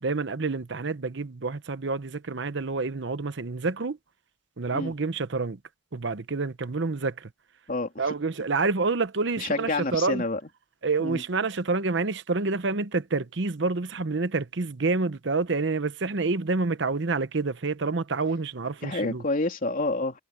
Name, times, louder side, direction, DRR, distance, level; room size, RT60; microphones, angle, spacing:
voice 1, 0.0-4.0 4.6-5.6 5.9-7.3 8.0-10.2 10.8-19.2, right 3 dB, 65° right, 0.9 m, -28 dB
voice 2, 7.7-8.0 9.4-10.4 11.0-11.2 18.8-20.2, left 2 dB, 45° left, 3.1 m, -28 dB
head